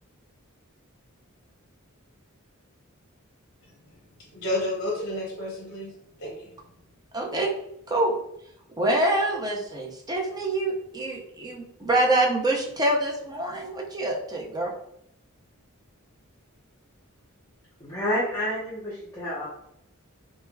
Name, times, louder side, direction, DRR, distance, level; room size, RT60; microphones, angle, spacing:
voice 1, 4.3-6.5, left 1 dB, 55° left, -2 dB, 0.8 m, -31 dB
voice 2, 7.1-7.5 7.9-8.1 8.8-14.7, right 1 dB, 20° right, 0 dB, 0.6 m, -25 dB
voice 3, 17.8-19.5, equal, 15° left, -11 dB, 0.9 m, -29 dB
4.4 x 2.1 x 2.3 m, 0.75 s
head